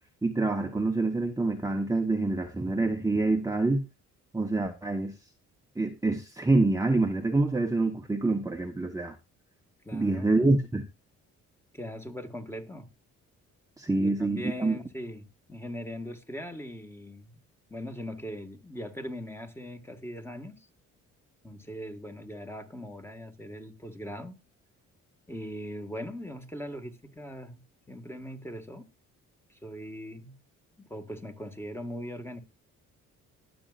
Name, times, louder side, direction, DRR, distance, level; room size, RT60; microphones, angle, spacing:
voice 1, 0.2-3.9 4.3-5.1 5.8-9.1 9.9-10.9 13.8-14.8, right 2 dB, 10° right, 1.0 m, -26 dB
voice 2, 9.8-10.4 11.7-12.9 14.0-17.4 17.7-20.7 21.4-24.4 25.3-27.6 27.9-28.9 29.5-30.4 30.8-32.4, equal, 10° left, 1.7 m, -40 dB
20.0 x 7.0 x 2.5 m
cardioid pair, 90°, 30 cm